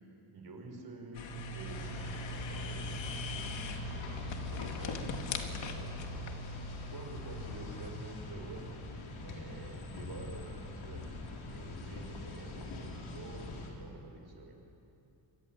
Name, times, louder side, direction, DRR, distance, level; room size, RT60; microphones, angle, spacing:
voice 1, 0.3-1.2 1.5-4.2 4.5-6.2 6.9-8.8 9.1-14.5, right 3 dB, 50° right, 3 dB, 5.6 m, -49 dB
sound 1, 1.1-7.9, left 2 dB, 70° left, 2.5 m, -41 dB
sound 2, 1.6-13.7, left 3 dB, 90° left, 4.5 m, -44 dB
26.5 x 23.5 x 9.0 m, 2.8 s
cardioid pair, 120°, 47 cm